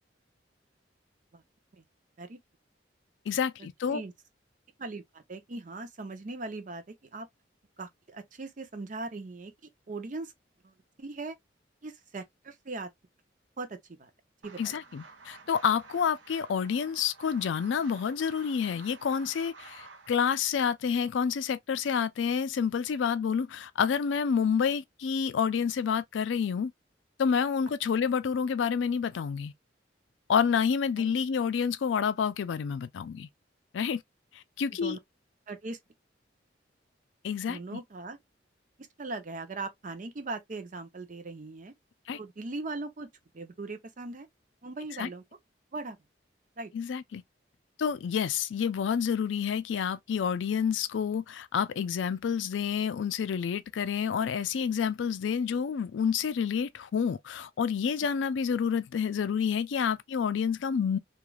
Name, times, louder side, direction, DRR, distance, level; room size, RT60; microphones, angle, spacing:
voice 1, 3.3-4.0 14.6-26.7 27.2-29.5 30.3-33.3 33.7-34.0 34.6-35.0 37.2-37.6 42.1-42.2 45.0-45.1 46.7-47.2 47.8-61.0, left 7 dB, 80° left, 0.4 m, -28 dB
voice 2, 4.8-7.3 7.8-9.5 9.9-10.3 10.6-11.4 11.8-12.9 13.6-14.1 14.4-14.8 31.0-31.1 34.8-35.0 35.5-35.8 37.5-38.2 38.8-41.7 42.1-43.1 43.3-44.3 44.6-45.2 45.7-46.0 46.6-46.7, right 3 dB, 45° right, 0.6 m, -39 dB
sound 1, 14.4-20.2, right 4 dB, 90° right, 0.8 m, -51 dB
3.1 x 2.4 x 2.2 m
head